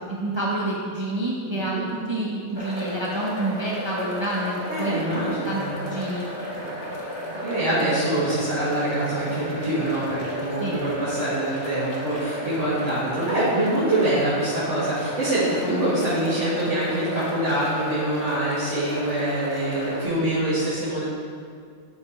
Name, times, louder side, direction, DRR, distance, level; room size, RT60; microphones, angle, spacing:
voice 1, 0.1-4.9 5.4-6.3 10.6-10.8, right 1 dB, 25° right, -5 dB, 0.9 m, -28 dB
sound 1, 2.5-20.0, equal, 20° left, 1.8 m, -33 dB
voice 2, 4.7-5.7 7.2-21.0, right 1 dB, 80° right, -14 dB, 2.8 m, -25 dB
12.5 x 4.2 x 4.5 m, 2.3 s
omnidirectional pair, 1.2 m